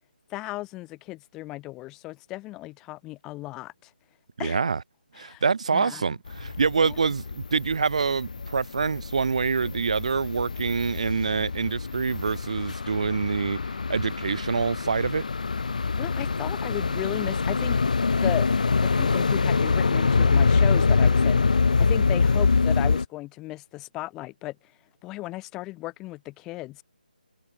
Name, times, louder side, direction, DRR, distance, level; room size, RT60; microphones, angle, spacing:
voice 1, 0.3-3.9 4.4-4.6 5.1-5.4 5.7-6.1 6.8-7.0 16.0-18.5 18.7-21.5 21.8-24.6 25.0-26.8, left 19 dB, 10° left, 2.9 m, -35 dB
voice 2, 4.4-4.8 5.1-13.6 13.9-15.3, right 5 dB, 40° right, 2.5 m, -26 dB
sound 1, 6.3-23.1, left 4 dB, 50° left, 1.5 m, -25 dB
hypercardioid pair, 175°, 5 cm